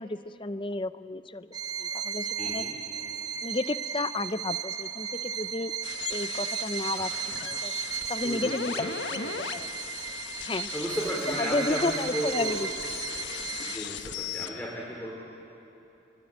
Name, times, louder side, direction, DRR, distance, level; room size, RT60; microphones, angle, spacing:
voice 1, 0.0-1.5 1.8-2.6 3.4-5.7 6.1-7.1 7.4-7.7 8.1-8.9 9.1-9.7 10.4-10.7 11.4-12.6 13.6-13.7, left 2 dB, 25° left, 13 dB, 0.6 m, -32 dB
Bowed string instrument, 1.5-14.0, right 8 dB, 20° right, 0.8 m, -35 dB
voice 2, 2.4-2.8 6.9-7.0 8.2-8.9 9.2-9.5 10.4-12.8 13.6-15.1, equal, 5° left, -4 dB, 3.3 m, -35 dB
sound 1, 5.8-14.5, left 7 dB, 65° left, 1.1 m, -38 dB
27.5 x 22.0 x 8.9 m, 2.9 s
head